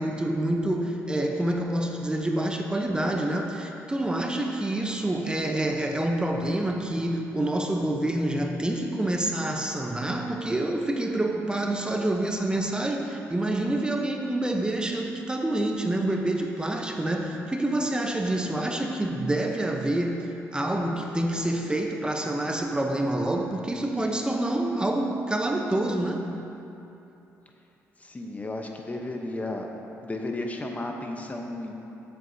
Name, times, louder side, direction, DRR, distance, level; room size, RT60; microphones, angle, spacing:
voice 1, 0.0-26.4, right 1 dB, 15° right, 2 dB, 0.9 m, -27 dB
voice 2, 28.0-29.7 30.0-31.7, left 2 dB, 25° left, 2 dB, 0.9 m, -33 dB
13.5 x 8.0 x 2.8 m, 2.9 s
cardioid pair, 70°, 6 cm